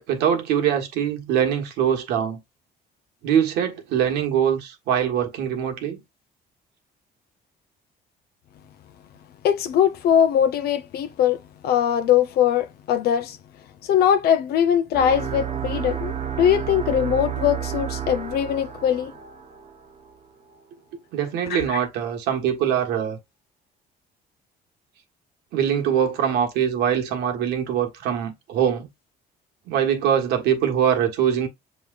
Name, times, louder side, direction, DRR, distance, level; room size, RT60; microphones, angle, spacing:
voice 1, 0.0-2.4 3.2-6.0 20.9-23.2 25.5-28.9 29.7-31.5, right 9 dB, 85° right, 1.3 m, -23 dB
voice 2, 9.4-11.4 11.6-13.4 13.8-19.1 21.5-21.8, left 9 dB, 70° left, 0.6 m, -21 dB
sound 1, 14.9-20.2, right 9 dB, 45° right, 1.0 m, -31 dB
7.1 x 3.1 x 2.4 m
cardioid pair, 110°, 17 cm